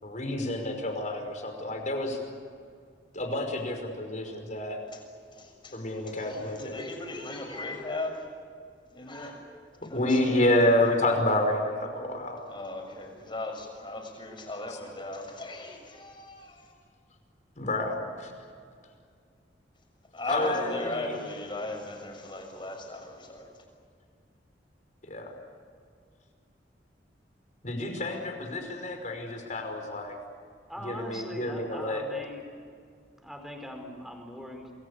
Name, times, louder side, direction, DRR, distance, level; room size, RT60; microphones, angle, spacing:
voice 1, 0.0-2.2 3.1-4.8 5.7-6.7 9.9-12.4 17.6-18.3 20.3-21.2 25.0-25.3 27.6-30.2 30.8-32.1, left 1 dB, 45° left, 4 dB, 5.3 m, -29 dB
voice 2, 5.3-5.8 6.0-8.2 8.9-9.4 9.9-10.6 12.5-16.7 20.1-23.5, left 2 dB, 30° left, 3 dB, 6.6 m, -37 dB
voice 3, 30.7-32.5 33.2-34.7, equal, ahead, 3 dB, 4.7 m, -41 dB
28.5 x 21.5 x 8.4 m, 2.2 s
head